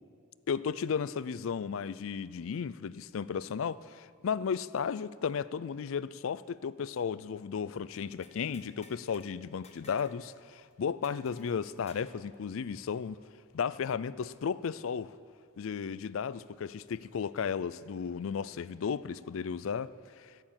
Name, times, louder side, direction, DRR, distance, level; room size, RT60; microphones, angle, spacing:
voice 1, 0.5-13.2 13.5-15.1 15.6-20.3, left 6 dB, 65° left, 0.4 m, -34 dB
sound 1, 8.2-9.3 9.6-10.2 10.5-10.6 11.0-12.2, left 2 dB, 30° left, 1.2 m, -57 dB
13.0 x 11.0 x 7.5 m
head